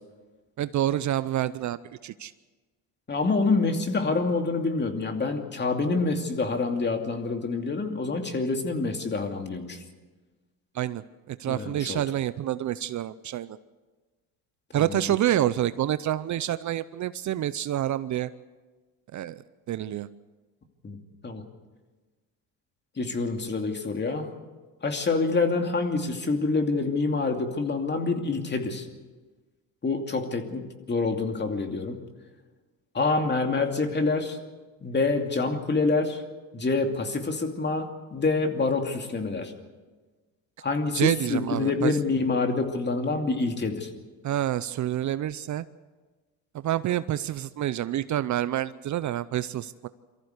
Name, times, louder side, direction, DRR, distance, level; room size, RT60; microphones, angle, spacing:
voice 1, 0.6-2.3 10.7-11.0 11.3-13.6 14.7-18.3 19.1-19.4 19.7-20.1 40.9-42.0 44.2-45.6 46.6-49.9, right 12 dB, 45° right, 15 dB, 0.7 m, -28 dB
voice 2, 3.1-9.8 11.5-12.0 14.7-15.0 20.8-21.0 21.2-21.4 23.0-24.3 24.8-28.9 29.8-32.0 32.9-34.4 34.8-36.2 36.5-39.5 40.6-43.9, left 3 dB, 25° left, 5 dB, 2.6 m, -27 dB
23.5 x 14.5 x 8.1 m, 1.3 s
supercardioid pair, 95°, 39 cm